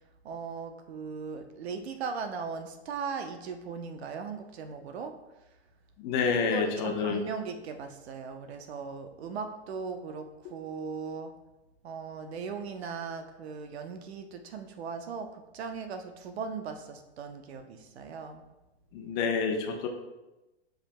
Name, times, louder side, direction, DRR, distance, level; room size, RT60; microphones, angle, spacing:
voice 1, 0.2-5.2 6.5-11.3 11.8-18.4, right 5 dB, 70° right, 7 dB, 0.9 m, -38 dB
voice 2, 6.0-7.2 18.9-19.9, left 5 dB, 40° left, 4 dB, 0.9 m, -28 dB
10.0 x 5.2 x 2.2 m, 1.0 s
hypercardioid pair, 140°, 33 cm